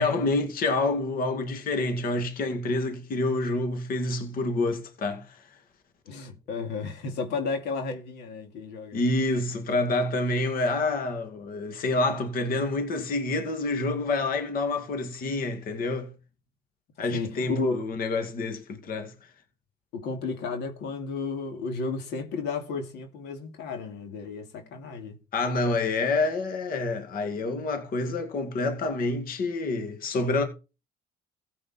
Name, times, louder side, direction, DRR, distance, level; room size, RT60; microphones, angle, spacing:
voice 1, 0.0-5.4 8.9-16.1 17.0-19.1 25.3-30.4, left 2 dB, 60° left, 2.1 m, -27 dB
voice 2, 6.1-9.0 17.1-17.8 19.9-25.2, left 4 dB, 85° left, 2.5 m, -33 dB
15.0 x 7.6 x 4.3 m
cardioid pair, 110°, 17 cm